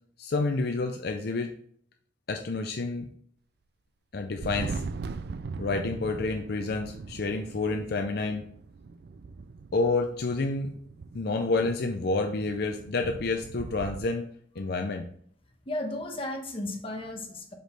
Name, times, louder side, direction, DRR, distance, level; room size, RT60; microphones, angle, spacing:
voice 1, 0.2-1.5 2.3-3.1 4.1-4.8 5.6-8.4 9.7-10.7 11.1-14.3 14.6-15.1, left 3 dB, 60° left, 4 dB, 0.5 m, -29 dB
Thunder, 4.2-14.1, right 4 dB, 60° right, 0.4 m, -40 dB
voice 2, 15.7-17.5, left 1 dB, 30° left, 2 dB, 1.1 m, -34 dB
6.0 x 5.1 x 3.2 m, 0.62 s
head